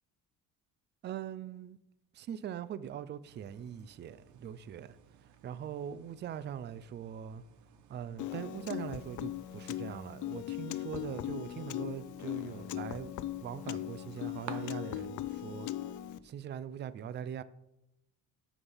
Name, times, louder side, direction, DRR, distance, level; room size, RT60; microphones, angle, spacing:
voice 1, 1.0-1.8 2.1-7.4 7.9-13.1 13.4-15.7 16.2-17.4, right 9 dB, 35° right, 0.4 m, -42 dB
sound 1, 3.3-14.5, right 9 dB, 60° right, 1.1 m, -56 dB
Piano, 8.2-16.2, left 13 dB, 60° left, 0.6 m, -39 dB
9.8 x 7.2 x 5.5 m
cardioid pair, 170°, 33 cm